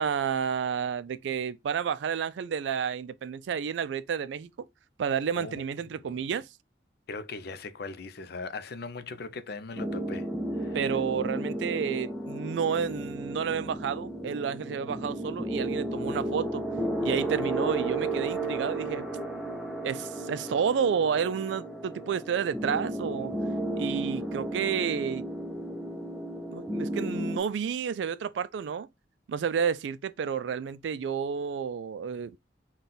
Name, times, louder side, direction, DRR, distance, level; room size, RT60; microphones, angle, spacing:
voice 1, 0.0-4.7 5.0-6.5 10.7-16.6 17.0-19.1 19.8-23.3 23.8-25.3 26.5-28.9 29.3-32.4, right 7 dB, 80° right, 0.3 m, -30 dB
voice 2, 7.1-10.3 10.6-10.8, left 3 dB, 60° left, 0.5 m, -39 dB
sound 1, 9.8-27.4, right 1 dB, 5° right, 0.5 m, -33 dB
3.8 x 2.3 x 3.9 m
head